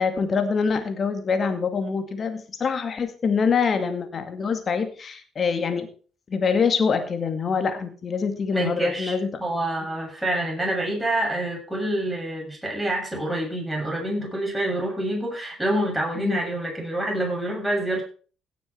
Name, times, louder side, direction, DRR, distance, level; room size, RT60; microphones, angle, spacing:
voice 1, 0.0-5.9 6.3-9.4 16.2-16.4, left 5 dB, 45° left, 9 dB, 2.1 m, -25 dB
voice 2, 8.5-18.0, right 1 dB, 5° right, -1 dB, 7.0 m, -27 dB
16.5 x 7.4 x 4.5 m, 0.40 s
hypercardioid pair, 50°, 0 cm